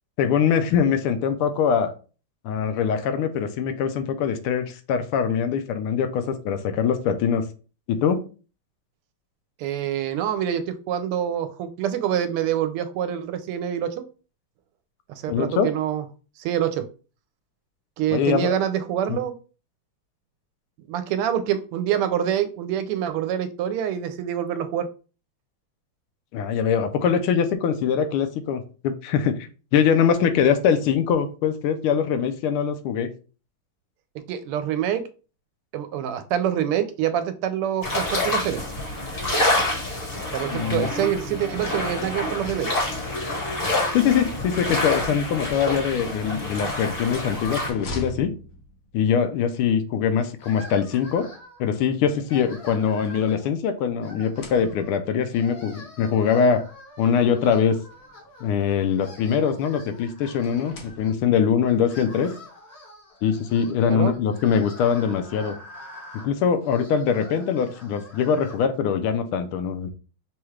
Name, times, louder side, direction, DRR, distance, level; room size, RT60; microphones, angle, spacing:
voice 1, 0.2-1.9 2.4-7.5 7.9-8.2 15.3-15.7 18.1-18.6 19.1-19.2 26.3-29.4 29.7-33.1 40.5-40.9 43.9-48.3 48.9-51.3 51.6-56.6 57.0-57.8 58.4-62.3 63.2-65.6 66.1-69.9, left 7 dB, 85° left, 9 dB, 1.5 m, -23 dB
voice 2, 9.6-13.9 15.1-16.0 16.4-16.8 18.0-19.3 20.9-24.9 34.3-35.0 35.7-38.6 40.3-42.7 63.9-64.1, right 10 dB, 90° right, 10 dB, 1.5 m, -26 dB
sound 1, 37.8-47.7, left 1 dB, 30° left, 1.4 m, -27 dB
sound 2, 45.9-49.1 50.4-51.6 52.4-53.8 54.2-55.1 56.1-56.2 56.5-56.6 57.8-59.1 60.3-61.5, left 1 dB, 70° left, 0.8 m, -43 dB
sound 3, 50.4-51.7 52.1-53.5 54.0-55.0 55.3-58.5 58.8-61.1 61.7-68.6, left 1 dB, 50° left, 1.9 m, -45 dB
6.0 x 2.3 x 3.2 m, 0.35 s
omnidirectional pair, 2.4 m